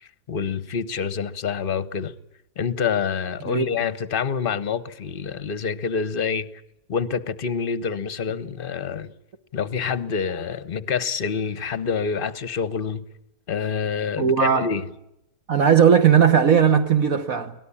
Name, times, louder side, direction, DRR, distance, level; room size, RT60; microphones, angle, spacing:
voice 1, 0.0-2.1 2.6-6.5 6.9-9.1 9.5-13.0 13.5-14.9, left 6 dB, 40° left, 1.0 m, -27 dB
voice 2, 14.2-14.7 15.5-17.5, right 7 dB, 55° right, 1.5 m, -17 dB
23.5 x 18.5 x 8.6 m
omnidirectional pair, 1.8 m